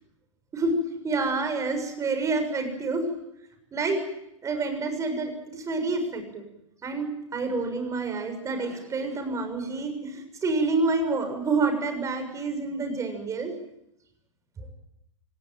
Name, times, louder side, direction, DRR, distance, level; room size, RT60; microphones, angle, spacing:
voice 1, 1.0-3.1 3.7-4.0 4.4-6.4 6.8-13.5 14.6-14.7, right 3 dB, 20° right, 6 dB, 7.0 m, -28 dB
27.5 x 18.0 x 9.2 m, 0.82 s
figure-of-eight pair, 105°, 16 cm